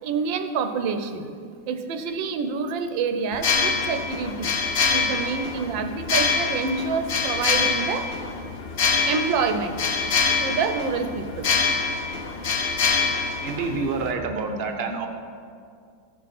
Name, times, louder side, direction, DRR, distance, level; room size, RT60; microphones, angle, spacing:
voice 1, 0.0-1.3 1.7-4.5 4.9-8.1 9.0-9.8 10.4-11.5, right 5 dB, 90° right, 8 dB, 1.4 m, -27 dB
sound 1, 3.3-14.1, left 5 dB, 70° left, 0.5 m, -25 dB
voice 2, 13.4-15.1, right 4 dB, 50° right, 5 dB, 0.8 m, -27 dB
14.0 x 5.1 x 5.8 m, 2.3 s
omnidirectional pair, 2.0 m